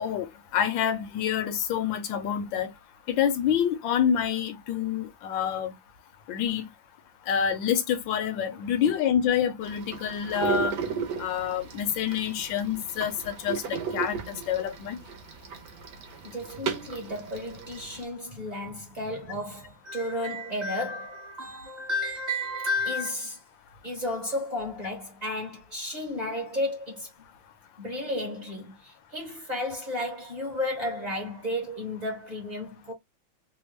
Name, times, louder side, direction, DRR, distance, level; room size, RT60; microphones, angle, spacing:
voice 1, 0.0-2.7 3.1-5.7 6.3-6.7 7.3-10.8 11.2-15.0, left 8 dB, 70° left, 1.3 m, -27 dB
sound 1, 9.6-18.0, right 6 dB, 60° right, 1.0 m, -35 dB
voice 2, 16.2-23.4 23.8-27.1 27.8-32.9, left 1 dB, 25° right, 1.1 m, -32 dB
3.4 x 2.2 x 3.1 m
omnidirectional pair, 2.3 m